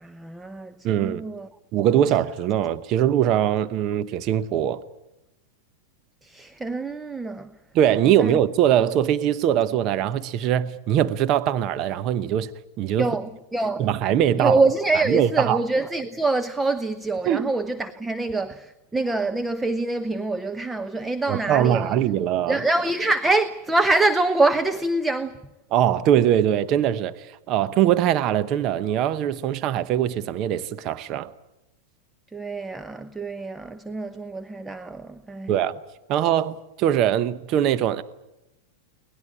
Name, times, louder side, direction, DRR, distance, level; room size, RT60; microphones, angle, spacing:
voice 1, 0.0-1.5 6.2-7.5 8.2-8.4 13.0-13.8 14.4-21.9 22.5-25.4 32.3-35.5, right 2 dB, 10° right, 0.9 m, -25 dB
voice 2, 0.8-1.2 1.7-4.8 7.7-12.5 12.8-13.1 13.8-14.6 15.1-15.6 17.2-17.5 21.3-22.6 25.7-31.3 35.5-35.8 36.1-38.0, right 10 dB, 45° right, 0.9 m, -22 dB
23.5 x 19.0 x 9.9 m
hypercardioid pair, 115°, 0 cm